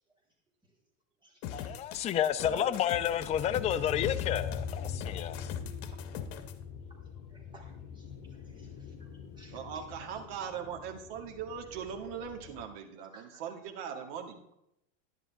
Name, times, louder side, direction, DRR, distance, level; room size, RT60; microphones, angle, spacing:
sound 1, 1.4-6.5, left 9 dB, 60° left, 1.4 m, -42 dB
voice 1, 1.5-5.4, left 10 dB, 20° left, 0.4 m, -30 dB
voice 2, 2.4-2.8 5.3-5.7 7.3-8.1 8.6-8.7 9.4-9.6 13.1-13.4, right 1 dB, 15° right, 4.2 m, -50 dB
sound 2, 3.1-12.6, left 7 dB, 40° left, 2.1 m, -42 dB
voice 3, 9.5-14.4, right 7 dB, 60° right, 2.2 m, -40 dB
11.5 x 10.5 x 3.6 m
supercardioid pair, 120°, 36 cm